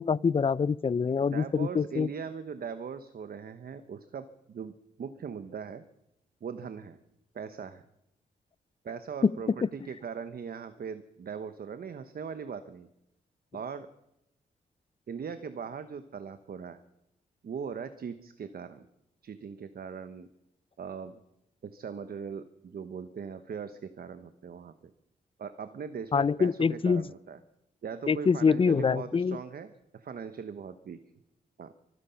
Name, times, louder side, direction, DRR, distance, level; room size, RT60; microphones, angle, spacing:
voice 1, 0.0-2.1 9.2-9.3 9.6-9.7 26.1-27.0 28.1-29.4, left 5 dB, 30° left, 22 dB, 0.5 m, -25 dB
voice 2, 1.2-5.8 6.4-7.0 7.3-7.8 8.8-12.9 13.5-13.9 15.1-16.8 17.4-18.9 19.2-20.3 20.8-21.2 21.6-24.7 25.4-27.4 27.8-31.0 31.6-31.7, right 6 dB, 60° right, 10 dB, 1.0 m, -40 dB
24.5 x 9.7 x 5.7 m, 0.85 s
cardioid pair, 55°, 17 cm